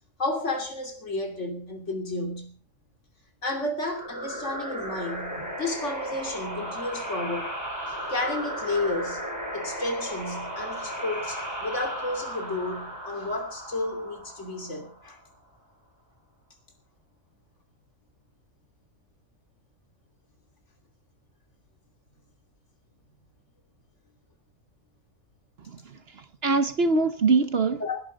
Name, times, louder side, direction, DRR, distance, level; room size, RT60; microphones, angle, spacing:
voice 1, 0.2-2.5 3.4-7.5 7.9-9.2 9.5-15.2 27.8-28.0, left 2 dB, 60° left, 3.3 m, -32 dB
sound 1, 3.9-15.3, equal, 15° right, 6.7 m, -35 dB
voice 2, 25.7-27.8, right 4 dB, 50° right, 1.2 m, -24 dB
20.0 x 11.5 x 5.2 m
omnidirectional pair, 1.4 m